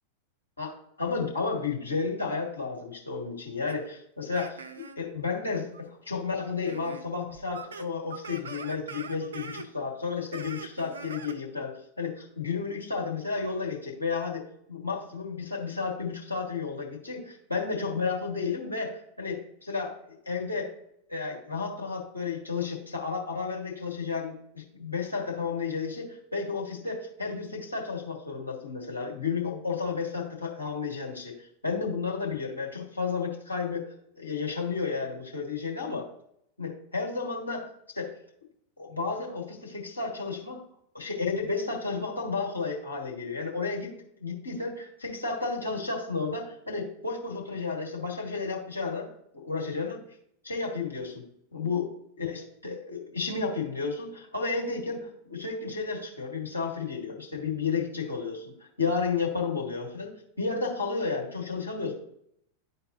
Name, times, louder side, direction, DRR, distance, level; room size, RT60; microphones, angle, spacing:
voice 1, 0.6-14.4 14.7-20.7 21.1-33.9 34.2-36.1 36.6-37.7 37.9-38.1 38.8-40.6 40.9-49.1 49.3-50.0 50.4-51.2 51.5-51.9 52.2-58.5 58.8-62.0, left 4 dB, 80° left, -2 dB, 1.7 m, -32 dB
sound 1, 3.7-3.8 4.3-5.0 5.7-5.8 6.6-7.0 7.3-9.7 10.3-11.4, right 5 dB, 70° right, 0.5 m, -42 dB
11.5 x 4.1 x 2.7 m, 0.72 s
figure-of-eight pair, 90°, 0 cm